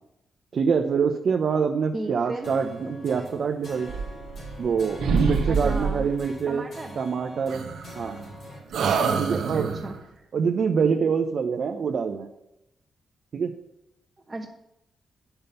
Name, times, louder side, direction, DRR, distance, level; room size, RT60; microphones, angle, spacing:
voice 1, 0.5-3.9 4.6-6.6 7.0-7.6 7.9-8.2 9.2-9.7 10.3-12.3 13.3-13.5, right 6 dB, 65° right, 3 dB, 0.8 m, -25 dB
voice 2, 1.9-2.5 5.5-6.1 6.5-7.0 9.3-9.9 14.3-14.5, right 2 dB, 30° right, 0 dB, 1.2 m, -35 dB
sound 1, 2.4-8.6, left 1 dB, 60° left, 4.3 m, -43 dB
sound 2, 3.9-4.7 5.0-6.2 7.5-8.3 8.7-10.0, right 5 dB, 80° right, 1.2 m, -26 dB
8.8 x 6.8 x 5.6 m, 0.86 s
cardioid pair, 65°, 0 cm